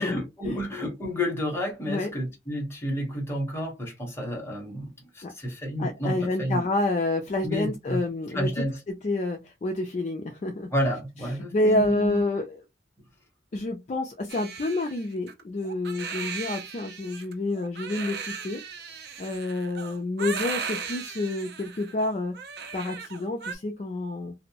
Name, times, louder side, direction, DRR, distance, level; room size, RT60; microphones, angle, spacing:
voice 1, 0.0-6.7 7.4-8.0 8.3-8.8 10.7-12.2, equal, 15° left, 0.9 m, -30 dB
voice 2, 5.8-8.5 9.0-10.7 11.5-12.6 13.5-18.6 19.2-22.3 22.7-24.3, left 2 dB, 40° left, 0.3 m, -28 dB
Crying sobbing, 14.3-23.5, right 6 dB, 60° right, 0.5 m, -37 dB
2.6 x 2.1 x 2.8 m
head